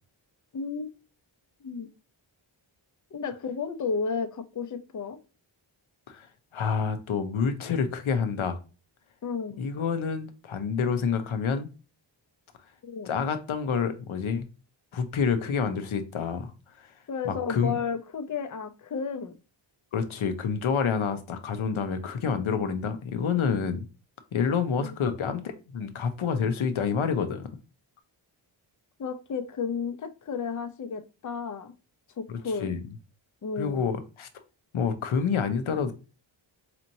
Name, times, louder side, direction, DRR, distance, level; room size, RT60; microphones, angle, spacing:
voice 1, 0.5-0.9 1.6-1.9 3.1-5.2 9.2-9.6 12.8-13.1 17.1-19.3 24.8-25.0 29.0-31.7 32.2-32.8 33.4-33.9, left 5 dB, 40° left, 0.6 m, -32 dB
voice 2, 6.5-8.6 9.6-11.7 13.1-14.4 14.9-16.5 17.2-17.8 19.9-23.8 24.3-25.4 25.7-27.5 32.3-32.8 33.6-34.3 34.7-35.9, left 6 dB, 75° left, 0.8 m, -28 dB
4.2 x 3.0 x 2.6 m
wide cardioid pair, 70°, 49 cm